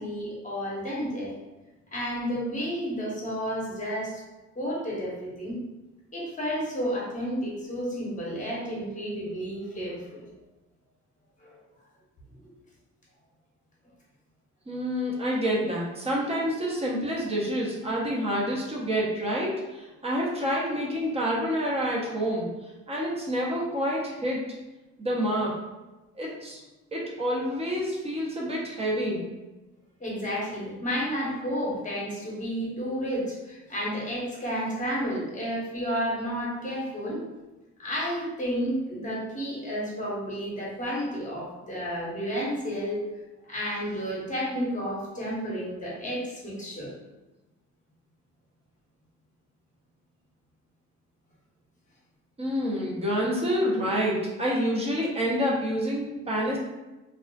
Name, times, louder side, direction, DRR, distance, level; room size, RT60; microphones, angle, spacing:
voice 1, 0.0-1.4 1.9-4.2 4.5-5.6 6.1-10.2 11.4-11.6 12.4-12.5 30.0-37.2 37.8-43.0 43.5-46.9, equal, 25° left, -5 dB, 1.0 m, -31 dB
voice 2, 14.7-22.5 22.9-24.4 25.0-25.5 26.2-26.6 26.9-29.3 52.4-56.6, equal, 20° right, -4 dB, 0.7 m, -28 dB
2.4 x 2.3 x 2.2 m, 1.1 s
cardioid pair, 90°, 30 cm